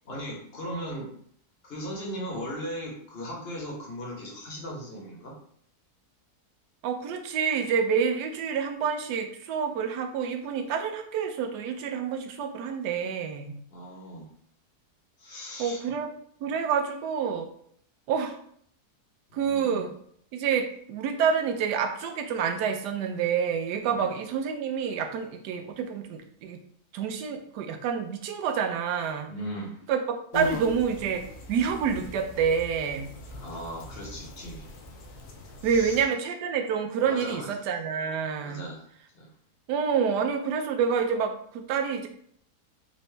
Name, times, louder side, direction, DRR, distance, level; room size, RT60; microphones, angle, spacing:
voice 1, 0.0-1.1 1.6-5.3 13.7-14.3 15.2-15.8 19.3-19.9 23.9-24.1 29.2-29.8 33.3-34.7 35.6-36.0 37.0-37.5 38.4-38.8 39.1-39.3, equal, 40° left, -2 dB, 1.1 m, -37 dB
voice 2, 6.8-13.5 15.6-16.1 16.4-17.5 18.1-18.4 19.3-19.9 20.3-26.6 26.9-29.3 29.9-31.2 31.5-33.1 35.6-38.7 39.7-42.1, right 6 dB, 85° right, 6 dB, 1.2 m, -28 dB
sound 1, 30.3-36.0, left 2 dB, 65° left, 0.9 m, -40 dB
4.1 x 2.7 x 3.2 m, 0.63 s
omnidirectional pair, 1.7 m